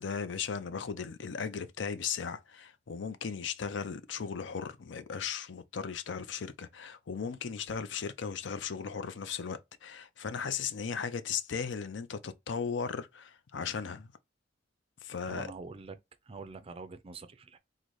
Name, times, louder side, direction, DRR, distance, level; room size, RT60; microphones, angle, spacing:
voice 1, 0.0-14.1 15.0-15.5, left 6 dB, 65° left, 0.5 m, -37 dB
voice 2, 15.3-16.0 16.3-17.6, right 4 dB, 30° right, 0.4 m, -45 dB
3.8 x 2.1 x 3.1 m
head